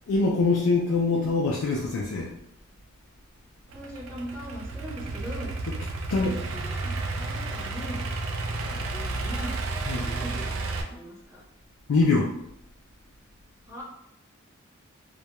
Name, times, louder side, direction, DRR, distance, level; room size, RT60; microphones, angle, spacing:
voice 1, 0.1-2.3 5.7-5.8 6.1-6.4 9.8-10.1 11.9-12.3, left 3 dB, 85° left, -2 dB, 0.4 m, -24 dB
voice 2, 3.7-5.5 6.1-8.0 8.6-9.6 10.0-11.4 13.7-13.8, equal, 15° right, -7 dB, 0.5 m, -40 dB
Idling / Accelerating revving vroom, 3.7-10.8, right 3 dB, 80° right, 0.4 m, -32 dB
2.2 x 2.1 x 2.8 m, 0.77 s
head